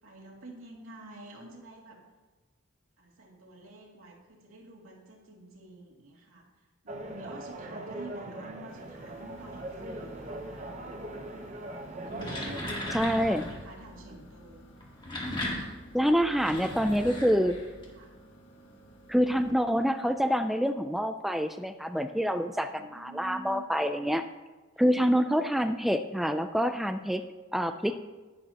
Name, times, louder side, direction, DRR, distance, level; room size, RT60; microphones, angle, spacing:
voice 1, 0.0-2.0 3.0-10.9 11.6-14.7 15.9-17.4 17.9-18.2 22.6-23.8 24.8-24.9, right 2 dB, 85° right, -2 dB, 2.5 m, -49 dB
sound 1, 6.9-12.9, right 1 dB, 35° right, 0.8 m, -41 dB
sound 2, 8.7-19.5, equal, 60° left, 1.5 m, -52 dB
sound 3, 11.9-13.6 14.8-17.8, left 1 dB, 20° left, 1.8 m, -37 dB
voice 2, 12.9-13.4 15.9-17.6 19.1-24.2 24.8-27.3 27.5-28.0, equal, ahead, 8 dB, 0.3 m, -26 dB
11.5 x 11.0 x 2.9 m, 1.2 s
head